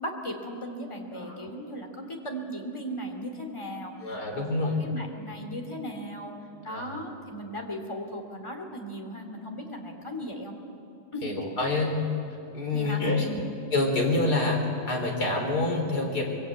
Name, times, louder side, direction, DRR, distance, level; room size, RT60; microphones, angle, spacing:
voice 1, 0.0-6.3 6.6-10.5 11.1-11.4 12.7-13.4, equal, 10° left, 2 dB, 1.9 m, -37 dB
voice 2, 1.1-1.5 4.0-4.8 6.7-6.9 11.2-11.9 12.5-13.3 13.7-14.6 14.9-16.3, left 2 dB, 25° left, 1 dB, 4.1 m, -27 dB
25.0 x 22.5 x 8.7 m, 2.5 s
omnidirectional pair, 4.5 m